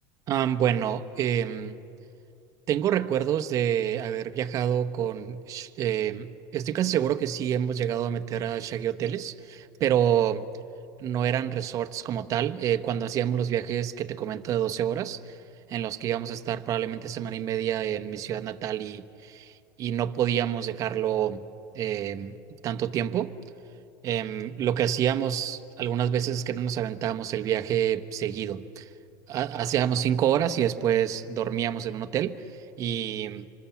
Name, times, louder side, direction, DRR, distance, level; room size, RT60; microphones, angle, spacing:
voice 1, 0.3-1.8 2.7-10.5 11.0-15.4 15.7-21.4 21.7-22.4 22.6-23.3 24.0-28.9 29.3-32.4 32.8-33.5, right 10 dB, 35° right, 1.1 m, -27 dB
26.5 x 26.0 x 7.3 m
supercardioid pair, 135°, 9 cm